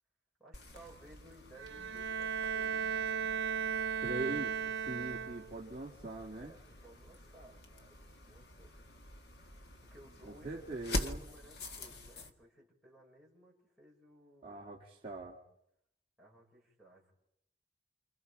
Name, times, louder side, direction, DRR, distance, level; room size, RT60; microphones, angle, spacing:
voice 1, 0.4-3.0 6.3-8.7 9.8-14.6 16.2-17.1, right 1 dB, ahead, -6 dB, 6.1 m, -59 dB
sound 1, 0.5-12.3, left 1 dB, 60° left, 1.8 m, -46 dB
Bowed string instrument, 1.6-5.7, right 7 dB, 85° right, 1.0 m, -36 dB
voice 2, 4.0-6.5 10.2-11.2 14.4-15.4, right 2 dB, 30° right, -4 dB, 2.4 m, -42 dB
29.5 x 28.0 x 5.0 m, 0.79 s
head